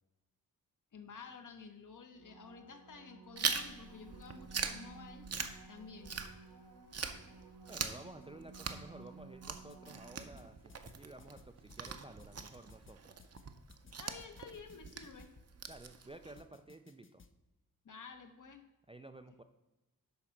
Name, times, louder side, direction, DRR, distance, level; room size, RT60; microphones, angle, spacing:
voice 1, 0.9-5.3 5.7-6.2 14.0-15.3 17.8-18.7, left 5 dB, 55° left, 7 dB, 1.0 m, -51 dB
sound 1, 2.1-10.7 16.1-16.2, right 4 dB, 85° right, 1.5 m, -56 dB
Chewing mastication, 3.4-6.6 6.9-16.4, right 5 dB, 45° right, 0.7 m, -42 dB
voice 2, 7.7-13.2 15.7-17.2 18.9-19.4, right 2 dB, 15° right, 8 dB, 0.3 m, -53 dB
sound 2, 9.5-9.9 10.2-15.5 16.4-17.3, left 5 dB, 35° left, 0.6 m, -60 dB
11.0 x 4.0 x 5.8 m, 1.0 s
wide cardioid pair, 135°, 37 cm